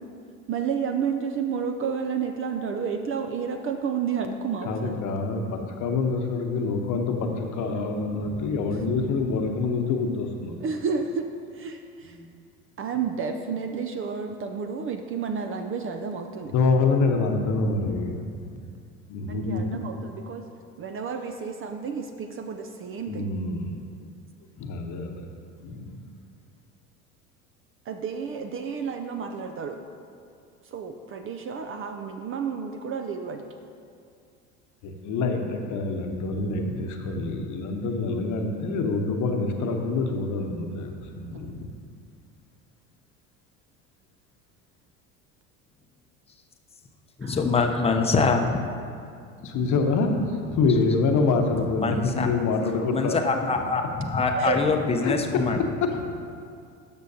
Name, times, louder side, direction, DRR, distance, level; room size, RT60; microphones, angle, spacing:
voice 1, 0.5-5.0 10.6-11.2 11.5-12.2 12.8-16.5 19.3-20.4 20.8-23.3 27.9-29.8 30.7-33.4 47.2-47.4 54.4-54.6, right 6 dB, 30° right, 6 dB, 0.5 m, -31 dB
voice 2, 4.6-10.5 16.5-18.2 19.1-19.6 23.1-23.8 24.6-25.3 25.6-26.0 34.8-41.7 49.4-53.3 55.0-55.1 55.9-56.0, left 3 dB, 45° left, 4 dB, 1.0 m, -26 dB
voice 3, 47.2-48.6 49.5-49.7 50.7-51.0 51.8-52.4 52.9-55.6, left 4 dB, 15° left, 4 dB, 0.7 m, -24 dB
12.0 x 6.2 x 2.8 m, 2.4 s
hypercardioid pair, 75°, 41 cm